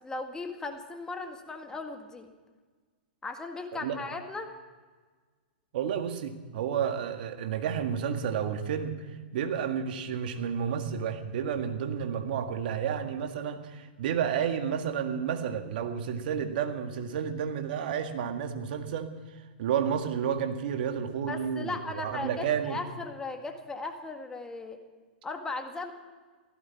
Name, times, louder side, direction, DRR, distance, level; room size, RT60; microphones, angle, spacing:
voice 1, 0.0-2.3 3.2-4.5 21.3-24.8 25.2-25.9, left 3 dB, 10° left, 4 dB, 1.8 m, -37 dB
voice 2, 5.7-9.0 9.3-19.1 19.6-22.8, right 8 dB, 60° right, 6 dB, 1.9 m, -31 dB
16.0 x 15.0 x 5.8 m, 1.4 s
hypercardioid pair, 125°, 5 cm